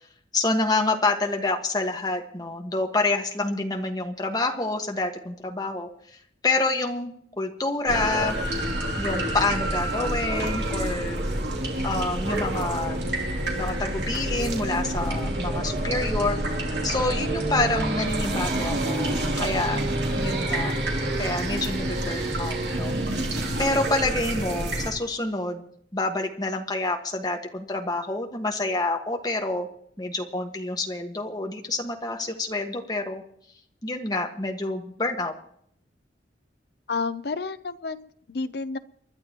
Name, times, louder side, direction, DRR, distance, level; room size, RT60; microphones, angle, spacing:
voice 1, 0.3-5.9 6.4-8.4 9.0-11.2 11.8-13.1 13.5-16.4 16.8-19.8 20.1-20.7 21.2-22.9 23.6-25.6 25.9-29.7 30.0-33.2 33.8-35.3, left 2 dB, 20° left, 2 dB, 1.6 m, -27 dB
sound 1, 7.8-24.9, right 1 dB, 75° right, 3.0 m, -28 dB
voice 2, 36.9-38.8, left 4 dB, 65° left, 12 dB, 0.7 m, -30 dB
30.0 x 12.0 x 3.0 m, 0.67 s
head